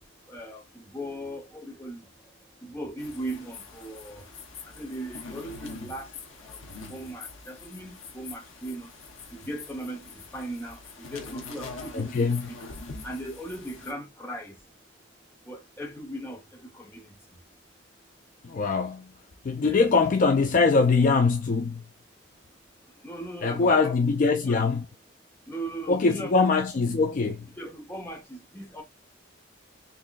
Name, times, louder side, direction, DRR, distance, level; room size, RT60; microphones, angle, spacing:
voice 1, 0.3-2.1 2.6-4.3 4.6-6.1 6.4-6.6 6.9-8.9 9.3-12.6 13.0-14.5 15.5-17.1 19.6-19.8 23.0-24.1 24.4-24.6 25.5-26.5 27.6-28.8, right 1 dB, 10° left, 1.0 m, -38 dB
sound 1, 3.0-13.9, left 4 dB, 80° left, 0.9 m, -44 dB
voice 2, 11.9-12.5 18.4-19.1 19.4-21.8 23.4-24.9 25.9-27.5, left 4 dB, 40° left, 0.3 m, -23 dB
3.9 x 3.0 x 2.4 m
head